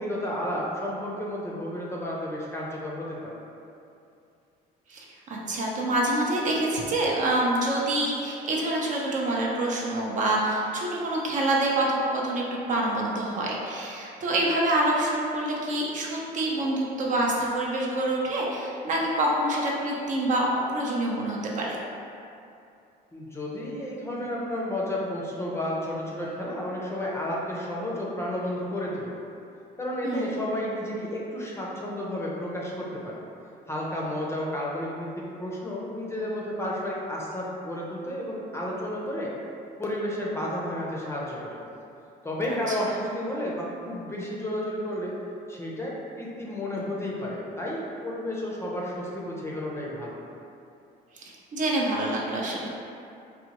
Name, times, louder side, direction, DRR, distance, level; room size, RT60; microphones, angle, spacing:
voice 1, 0.0-3.3 23.1-29.2 29.8-33.2 33.7-39.3 39.8-41.6 42.2-45.1 45.5-50.2, left 1 dB, 15° left, -4 dB, 0.5 m, -32 dB
voice 2, 4.9-21.8 30.0-30.3 42.5-42.7 51.2-52.7, right 1 dB, 50° right, -3 dB, 0.6 m, -26 dB
4.2 x 2.2 x 2.9 m, 2.6 s
cardioid pair, 110°, 17 cm